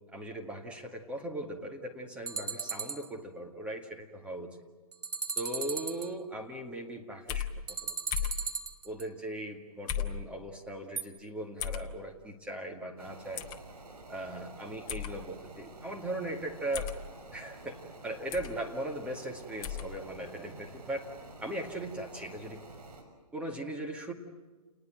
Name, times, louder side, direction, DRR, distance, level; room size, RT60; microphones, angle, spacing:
voice 1, 0.1-4.6 5.4-8.0 8.2-8.3 8.8-13.5 14.1-16.9 17.3-21.1 21.4-22.6 23.3-24.1, right 1 dB, 5° right, 1 dB, 2.0 m, -39 dB
sound 1, 2.3-3.1 4.9-6.1 7.7-9.0 11.0-11.1, right 5 dB, 90° right, 2.1 m, -36 dB
sound 2, 7.3-7.5 8.1-8.4 9.9-10.2 11.6-11.9 13.4-13.6 14.9-15.1 16.7-17.0 18.3-18.5 19.6-19.9, left 9 dB, 20° left, 1.4 m, -34 dB
sound 3, 13.0-23.0, right 3 dB, 70° right, 6.6 m, -50 dB
29.5 x 20.0 x 7.7 m, 1.3 s
hypercardioid pair, 145°, 20 cm